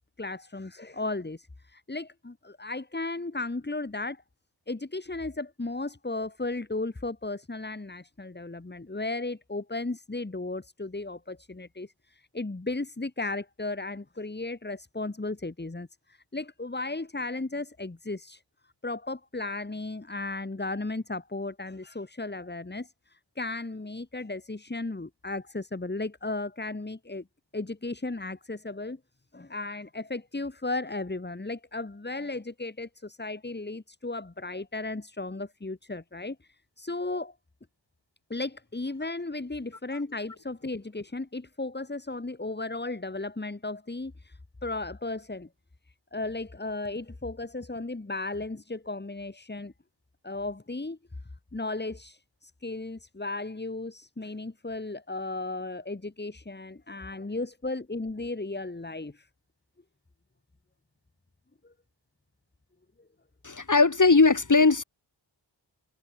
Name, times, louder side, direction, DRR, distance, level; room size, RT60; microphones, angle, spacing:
voice 1, 0.2-4.2 4.7-18.4 18.8-27.2 27.5-29.0 29.3-37.3 38.3-45.5 46.1-49.7 50.2-51.0 51.5-59.3 61.6-61.7, left 2 dB, 20° left, 1.9 m, -35 dB
voice 2, 63.4-64.8, left 4 dB, 40° left, 2.5 m, -19 dB
wide cardioid pair, 95°, 48 cm